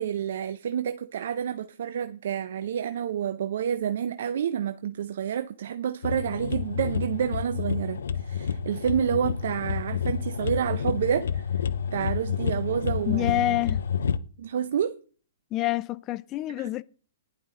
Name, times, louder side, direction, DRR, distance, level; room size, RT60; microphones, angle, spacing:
voice 1, 0.0-11.4 11.9-13.6 14.4-15.0 16.6-16.8, right 8 dB, 65° right, 0.7 m, -29 dB
sound 1, 6.0-14.2, left 7 dB, 70° left, 0.7 m, -29 dB
voice 2, 13.1-13.8 15.5-16.8, left 16 dB, 30° left, 0.5 m, -27 dB
15.5 x 11.0 x 3.8 m
hypercardioid pair, 125°, 0 cm